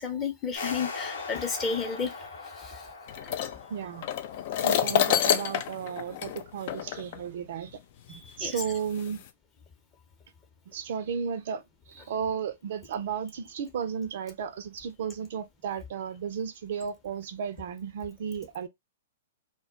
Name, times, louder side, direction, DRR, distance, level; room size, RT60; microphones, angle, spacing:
voice 1, 0.0-2.1 2.6-2.8 3.2-3.3 8.1-8.6, left 5 dB, 20° left, 0.7 m, -32 dB
sound 1, 0.5-5.5, left 4 dB, 80° left, 0.8 m, -40 dB
sound 2, 3.1-7.2 8.1-8.2 8.9-9.3, left 10 dB, 50° left, 0.3 m, -28 dB
voice 2, 3.7-4.1 4.6-7.7 8.1-9.2 10.7-11.6 11.9-18.7, right 7 dB, 60° right, 0.4 m, -34 dB
2.2 x 2.2 x 3.6 m
hypercardioid pair, 135°, 0 cm